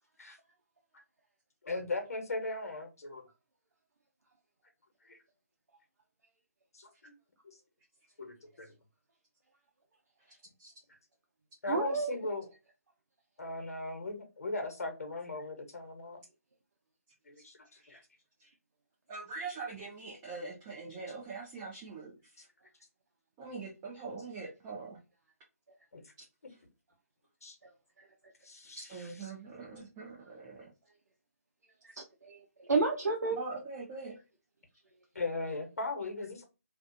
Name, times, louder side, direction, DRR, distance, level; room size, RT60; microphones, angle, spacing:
voice 1, 1.6-3.3 5.1-5.2 6.7-7.1 7.4-7.5 8.2-8.7 11.6-12.5 13.4-16.2 17.3-17.6 17.9-18.0 25.9-26.0 27.4-27.6 28.4-29.1 35.1-36.4, left 2 dB, 70° left, 0.9 m, -38 dB
voice 2, 10.3-10.7 17.8-18.0 18.4-18.5 19.1-22.1 22.4-22.5 23.4-25.0 28.8-30.7 33.3-34.2, right 4 dB, 15° right, 0.5 m, -43 dB
voice 3, 11.7-12.2 31.8-33.4, right 3 dB, 90° right, 0.6 m, -31 dB
2.3 x 2.3 x 2.5 m
hypercardioid pair, 160°, 9 cm